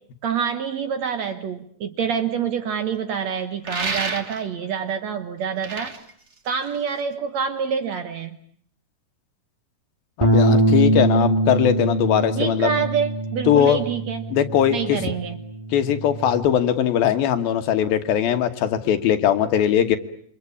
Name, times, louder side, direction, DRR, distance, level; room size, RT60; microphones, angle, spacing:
voice 1, 0.2-5.9 6.5-8.4 12.4-14.4 14.7-15.4, right 7 dB, 60° right, 8 dB, 2.0 m, -26 dB
sound 1, 3.6-4.6 5.4-7.1, right 3 dB, 40° right, 1.0 m, -30 dB
voice 2, 10.2-12.7 13.5-13.8 14.3-15.1 15.7-20.0, left 9 dB, 75° left, 8 dB, 3.1 m, -20 dB
Bass guitar, 10.2-16.5, right 1 dB, 5° right, 3.0 m, -23 dB
28.0 x 24.5 x 8.5 m, 0.64 s
omnidirectional pair, 4.3 m